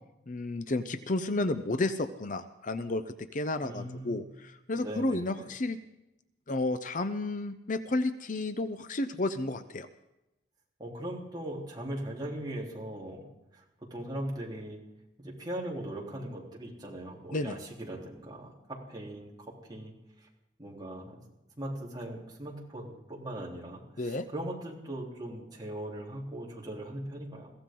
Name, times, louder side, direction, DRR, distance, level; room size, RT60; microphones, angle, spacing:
voice 1, 0.3-5.8 6.5-9.9 17.3-17.6 24.0-24.2, left 2 dB, 45° left, 10 dB, 0.7 m, -32 dB
voice 2, 3.6-4.2 4.8-5.5 10.8-13.6 13.9-14.8 15.2-18.5 18.9-19.9 20.2-20.3 20.6-21.2 21.6-27.5, right 1 dB, 25° right, -3 dB, 3.9 m, -39 dB
22.5 x 15.5 x 3.9 m, 0.93 s
head